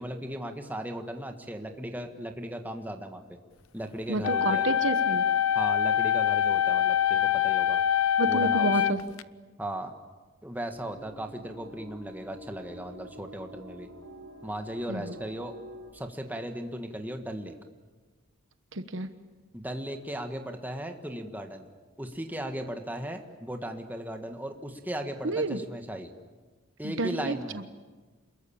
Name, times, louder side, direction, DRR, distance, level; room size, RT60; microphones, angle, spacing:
voice 1, 0.0-3.2 3.7-4.7 5.5-7.8 8.2-8.7 9.6-9.9 10.4-13.9 14.4-15.5 15.9-17.5 19.5-21.7 22.0-26.1 26.8-27.6, right 1 dB, 10° right, 5 dB, 1.6 m, -37 dB
voice 2, 4.1-5.2 8.2-9.0 14.9-15.2 18.7-19.1 25.2-25.6 26.8-27.6, right 2 dB, 60° right, 10 dB, 1.2 m, -30 dB
sound 1, 4.2-9.2, left 10 dB, 75° left, 0.8 m, -24 dB
sound 2, 10.7-15.9, right 1 dB, 85° right, 6.5 m, -48 dB
28.0 x 21.5 x 8.7 m, 1.4 s
head